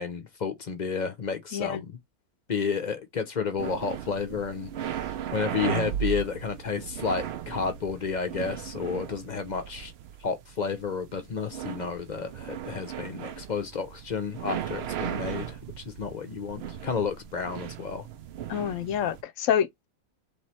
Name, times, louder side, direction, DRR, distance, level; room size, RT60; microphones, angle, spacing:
voice 1, 0.0-1.9 2.5-9.9 10.2-18.1, left 5 dB, 45° left, 0.6 m, -31 dB
sound 1, 3.6-19.2, right 10 dB, 65° right, 0.7 m, -37 dB
voice 2, 18.5-19.9, left 9 dB, 70° left, 1.0 m, -27 dB
3.3 x 3.1 x 4.3 m
omnidirectional pair, 1.5 m